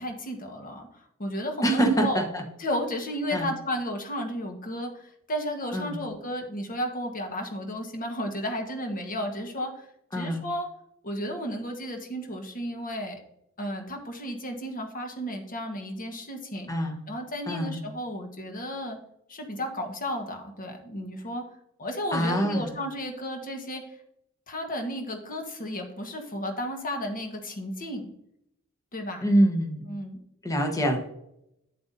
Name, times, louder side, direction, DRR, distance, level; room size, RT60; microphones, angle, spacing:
voice 1, 0.0-2.2 2.6-9.9 10.1-10.7 11.0-13.2 13.6-16.7 17.1-19.0 19.3-21.4 21.8-24.0 24.5-28.1 28.9-29.3 29.9-30.2, equal, 40° left, 4 dB, 1.3 m, -33 dB
voice 2, 1.6-2.4 3.3-3.5 5.7-6.0 10.1-10.4 16.7-17.0 17.5-17.8 22.1-22.7 29.2-29.8 30.4-31.0, right 1 dB, 15° left, 3 dB, 1.1 m, -25 dB
8.7 x 7.9 x 2.7 m, 0.78 s
head